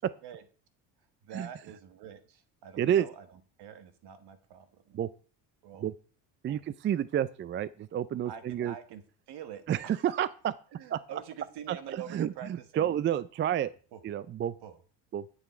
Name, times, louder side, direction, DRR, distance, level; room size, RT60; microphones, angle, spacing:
voice 1, 1.2-5.0 5.6-5.8 6.5-6.6 8.2-10.0 10.7-12.9 13.9-14.0 14.6-14.8, right 8 dB, 65° right, 11 dB, 1.4 m, -46 dB
voice 2, 6.4-8.7 9.7-10.5 10.9-11.2 11.7-13.7 14.0-14.5 15.1-15.3, right 10 dB, 30° right, 18 dB, 0.4 m, -30 dB
9.4 x 6.2 x 4.3 m, 0.40 s
supercardioid pair, 80°, 43 cm